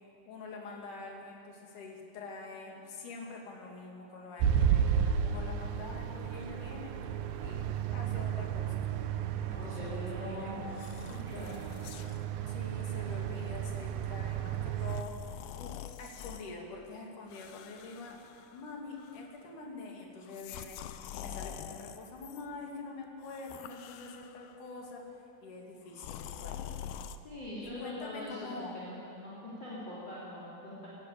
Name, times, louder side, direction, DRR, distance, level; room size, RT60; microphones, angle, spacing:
voice 1, 0.3-7.0 7.4-8.9 9.5-10.6 12.5-18.2 18.5-26.8 27.6-28.8, left 3 dB, 60° left, 0 dB, 4.0 m, -46 dB
sound 1, 4.4-15.0, right 8 dB, 75° right, 2.6 m, -33 dB
voice 2, 9.5-10.7 11.1-11.6 27.2-29.0 29.2-30.9, left 1 dB, 30° left, -7 dB, 4.1 m, -42 dB
sound 2, 10.7-12.3 13.0-13.2 14.8-16.5 17.3-18.7 19.0-19.4 20.2-22.5 23.2-24.6 25.9-27.2, left 10 dB, 75° left, 2.3 m, -46 dB
18.5 x 16.5 x 8.6 m, 2.7 s
omnidirectional pair, 4.3 m